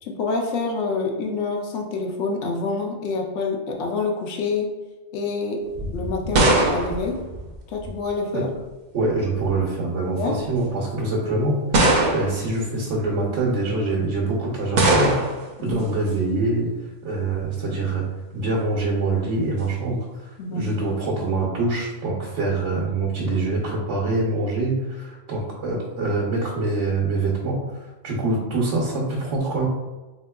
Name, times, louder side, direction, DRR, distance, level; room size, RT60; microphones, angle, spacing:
voice 1, 0.0-4.7 5.1-7.2 7.7-8.5 10.2-10.4 15.6-15.8 20.4-20.7, left 4 dB, 85° left, 2 dB, 0.9 m, -27 dB
sound 1, 5.7-8.1 9.1-9.6 10.4-10.5 11.7-12.5 14.8-15.5, right 2 dB, 55° right, 0.5 m, -21 dB
voice 2, 8.9-11.5 12.1-15.2 15.6-16.7 17.0-18.0 18.3-20.0 20.5-27.6 28.0-29.6, right 2 dB, 85° right, -3 dB, 1.1 m, -24 dB
3.5 x 2.9 x 2.2 m, 1.1 s
omnidirectional pair, 1.2 m